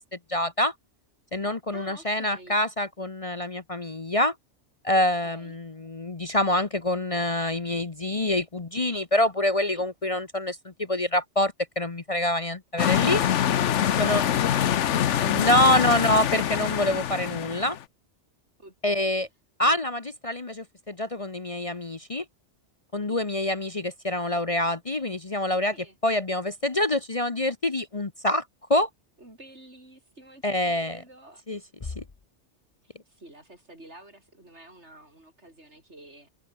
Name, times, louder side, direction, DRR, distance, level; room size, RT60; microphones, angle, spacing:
voice 1, 0.3-0.7 1.3-4.3 4.8-13.2 14.0-14.2 15.2-17.8 18.8-19.3 19.6-22.2 22.9-25.7 26.0-28.4 28.7-28.9 30.4-31.0 31.5-32.0, left 1 dB, 30° left, 1.1 m, -26 dB
voice 2, 1.7-2.6 5.2-5.6 9.7-9.9 13.2-16.2 18.6-19.2 23.0-23.2 25.7-26.0 29.2-31.4 32.8-36.3, right 1 dB, 70° right, 7.5 m, -49 dB
sound 1, 12.8-17.8, left 10 dB, 85° left, 1.1 m, -24 dB
omnidirectional pair, 1.2 m